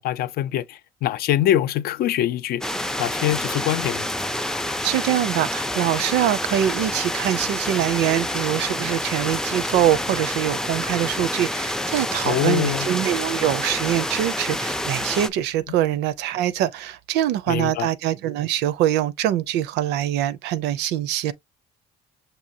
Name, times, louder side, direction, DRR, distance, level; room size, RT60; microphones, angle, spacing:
voice 1, 0.0-2.6 3.0-4.1 12.2-12.9 17.5-17.9, left 12 dB, 65° left, 0.4 m, -23 dB
sound 1, 2.6-15.3, left 1 dB, 5° left, 0.4 m, -28 dB
voice 2, 4.8-21.3, right 12 dB, 85° right, 0.5 m, -23 dB
6.2 x 2.7 x 2.6 m
cardioid pair, 110°, 17 cm